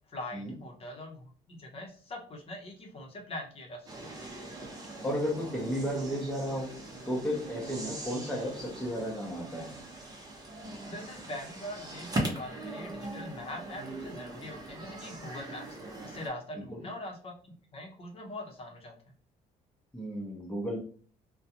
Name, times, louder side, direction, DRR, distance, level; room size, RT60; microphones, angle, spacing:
voice 1, 0.1-4.1 10.9-15.8 16.0-17.3 17.7-18.9, left 1 dB, 40° left, 0 dB, 0.8 m, -42 dB
sound 1, 3.9-16.3, right 2 dB, 25° right, 0.8 m, -40 dB
voice 2, 5.0-6.8 7.1-9.7 16.7-16.9 19.9-20.8, equal, 5° left, -2 dB, 0.7 m, -33 dB
2.4 x 2.2 x 2.8 m, 0.43 s
cardioid pair, 105°, 15 cm